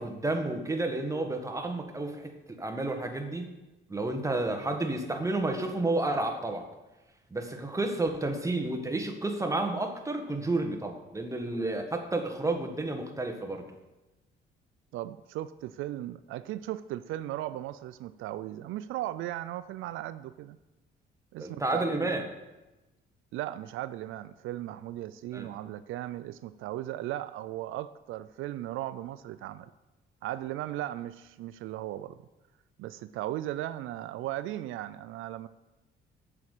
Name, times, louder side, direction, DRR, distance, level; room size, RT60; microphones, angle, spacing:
voice 1, 0.0-3.5 3.9-6.7 7.3-13.7 21.4-22.2 25.3-25.5, right 2 dB, 15° right, 4 dB, 1.6 m, -31 dB
voice 2, 14.9-20.6 21.3-22.1 23.3-29.7 30.2-32.3 32.8-35.5, right 14 dB, 85° right, 14 dB, 0.4 m, -37 dB
8.6 x 7.2 x 6.6 m, 1.1 s
cardioid pair, 90°, 20 cm